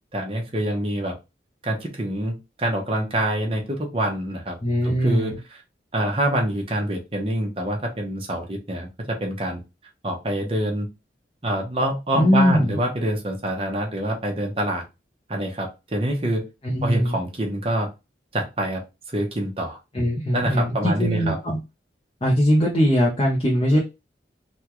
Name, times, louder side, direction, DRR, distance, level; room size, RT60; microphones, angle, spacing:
voice 1, 0.1-1.1 1.6-4.5 4.8-5.4 5.9-9.6 10.0-10.9 11.4-14.8 15.3-16.5 16.8-17.9 18.3-18.8 19.1-19.8 20.3-21.4 23.7-23.8, right 1 dB, 30° right, 1 dB, 0.9 m, -26 dB
voice 2, 4.6-5.4 12.1-12.8 16.6-17.2 19.9-21.6 22.2-23.8, equal, 30° left, -3 dB, 0.6 m, -21 dB
3.5 x 2.3 x 3.0 m, 0.26 s
head